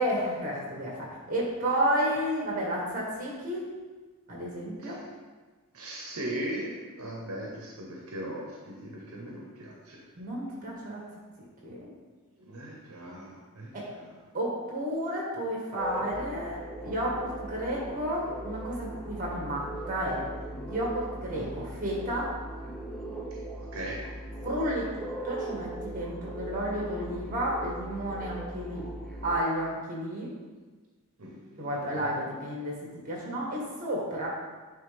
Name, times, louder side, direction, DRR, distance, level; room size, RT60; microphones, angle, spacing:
voice 1, 0.0-3.7 4.3-5.0 10.2-11.0 11.6-11.9 13.7-13.9 14.3-20.2 20.7-22.3 24.4-28.8 29.2-30.3 31.6-32.8 33.0-34.3, equal, 40° right, -4 dB, 1.7 m, -31 dB
voice 2, 5.7-10.0 12.4-14.1 21.3-21.5 23.6-24.0 31.2-32.1, right 1 dB, 75° right, -3 dB, 0.9 m, -39 dB
sound 1, 15.8-29.4, right 1 dB, 5° left, 0.6 m, -39 dB
9.1 x 3.4 x 3.5 m, 1.3 s
head